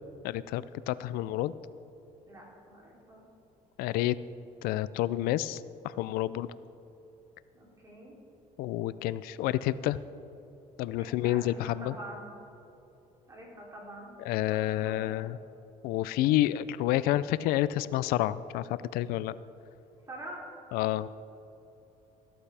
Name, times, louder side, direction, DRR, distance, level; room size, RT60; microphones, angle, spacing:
voice 1, 0.2-1.5 3.8-4.2 4.6-6.5 8.6-10.0 10.8-11.9 14.3-15.4 15.8-19.4 20.7-21.1, left 14 dB, 90° left, 16 dB, 0.4 m, -29 dB
voice 2, 2.3-3.2 7.5-8.2 11.0-12.3 13.3-14.1 14.4-15.1 20.1-20.4, right 1 dB, 20° right, -3 dB, 3.1 m, -46 dB
14.5 x 13.0 x 3.4 m, 3.0 s
cardioid pair, 150°, 15 cm